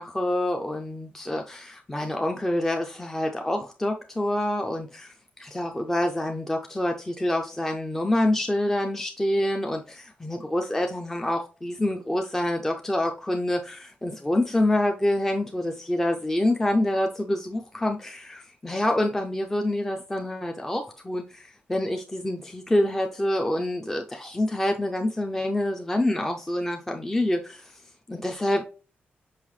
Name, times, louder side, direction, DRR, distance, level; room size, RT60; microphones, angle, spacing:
voice 1, 0.0-27.8 28.1-28.6, left 1 dB, 10° left, 0.5 m, -27 dB
5.6 x 5.4 x 3.1 m
wide cardioid pair, 175°, 4 cm